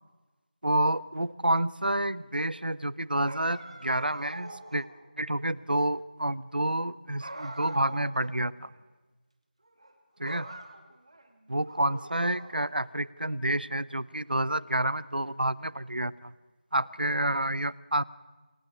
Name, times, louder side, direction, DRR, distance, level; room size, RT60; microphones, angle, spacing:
voice 1, 0.6-4.9 5.2-8.7 10.2-10.5 11.5-16.3 16.7-18.0, right 1 dB, 70° right, 20 dB, 0.8 m, -29 dB
sound 1, 3.2-5.0 7.2-8.4 8.7-8.8 9.7-9.9 10.2-11.2 11.7-12.8, right 2 dB, 40° right, 2.2 m, -43 dB
27.5 x 12.0 x 8.6 m, 1.2 s
figure-of-eight pair, 170°, 5 cm